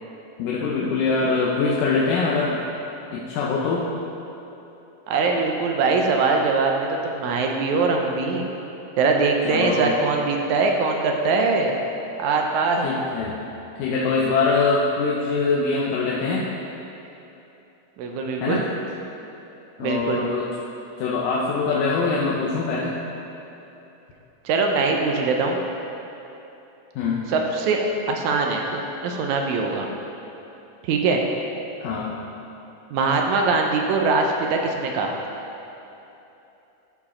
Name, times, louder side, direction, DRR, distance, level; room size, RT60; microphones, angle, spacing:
voice 1, 0.4-2.6 3.1-3.9 9.5-9.9 12.8-13.4 13.8-16.5 18.4-18.6 19.8-20.5 21.0-23.0 27.0-27.3 31.8-32.1, left 4 dB, 85° left, -5 dB, 2.3 m, -23 dB
voice 2, 5.1-8.5 9.0-11.8 12.2-12.9 18.0-18.6 19.8-20.2 24.5-25.6 27.3-27.8 28.1-29.9 30.8-31.2 32.9-35.1, right 4 dB, 75° right, 2 dB, 1.8 m, -22 dB
12.5 x 4.6 x 4.2 m, 3.0 s
omnidirectional pair, 3.7 m